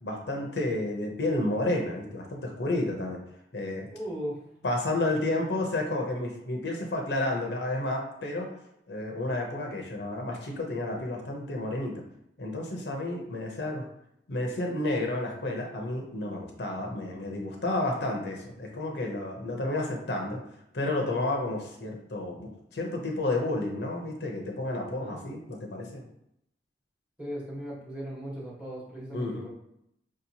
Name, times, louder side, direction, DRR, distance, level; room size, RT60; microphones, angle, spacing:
voice 1, 0.0-3.2 3.5-3.9 4.6-8.5 8.9-12.0 12.4-13.9 14.3-20.4 20.7-26.0 29.1-29.5, left 2 dB, 70° left, 1 dB, 0.7 m, -31 dB
voice 2, 3.9-4.5 25.0-25.2 27.2-29.5, equal, 5° right, -6 dB, 1.1 m, -37 dB
5.0 x 2.8 x 2.7 m, 0.77 s
head